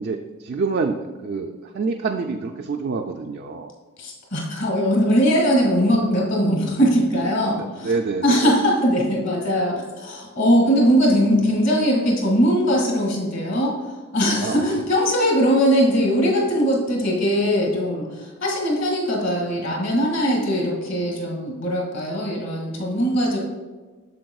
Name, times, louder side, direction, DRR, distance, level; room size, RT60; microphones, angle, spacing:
voice 1, 0.0-3.7 7.6-8.5 14.3-14.6, right 4 dB, 50° right, 3 dB, 0.3 m, -27 dB
voice 2, 4.0-7.9 8.2-13.8 14.1-23.4, equal, 60° left, -2 dB, 2.0 m, -20 dB
7.7 x 7.0 x 2.3 m, 1.3 s
head